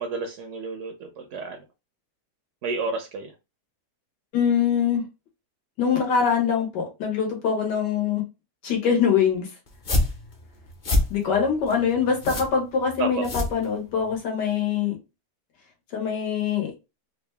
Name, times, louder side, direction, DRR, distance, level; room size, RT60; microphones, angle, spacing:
voice 1, 0.0-1.6 2.6-3.3 13.0-13.2, right 4 dB, 70° right, 0.7 m, -31 dB
voice 2, 4.3-5.0 5.8-8.2 8.6-9.5 11.1-15.0 15.9-16.7, left 7 dB, 85° left, 1.8 m, -23 dB
sound 1, 9.7-14.2, left 2 dB, 40° left, 0.7 m, -27 dB
3.8 x 2.3 x 3.2 m
omnidirectional pair, 1.8 m